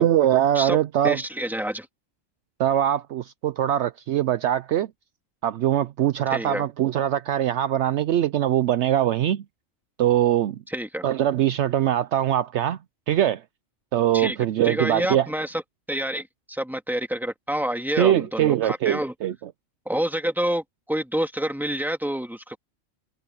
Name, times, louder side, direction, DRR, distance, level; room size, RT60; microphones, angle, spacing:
voice 1, 0.0-1.2 2.6-4.9 5.4-9.4 10.0-10.6 11.0-12.8 13.1-13.4 13.9-15.3 18.0-19.3, right 11 dB, 70° right, 0.8 m, -22 dB
voice 2, 1.0-1.9 6.3-6.7 10.7-11.1 14.1-14.4 14.6-15.6 15.9-19.1 19.9-22.6, right 1 dB, ahead, 2.4 m, -28 dB
omnidirectional pair, 1.3 m